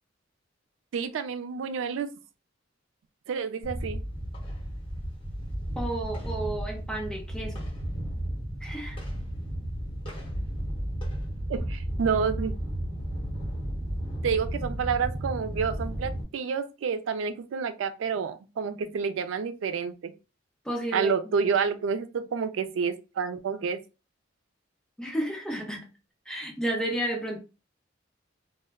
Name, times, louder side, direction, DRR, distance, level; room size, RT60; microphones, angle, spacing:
voice 1, 0.9-2.1 3.3-4.0 11.5-12.6 14.2-20.1 20.9-23.8, right 6 dB, 90° right, 0.3 m, -29 dB
sound 1, 3.6-16.2, equal, 30° left, 1.0 m, -33 dB
voice 2, 5.8-7.7 8.6-9.0 20.6-21.1 25.0-25.8 26.3-27.4, right 1 dB, 5° left, 0.6 m, -32 dB
2.1 x 2.1 x 3.4 m
head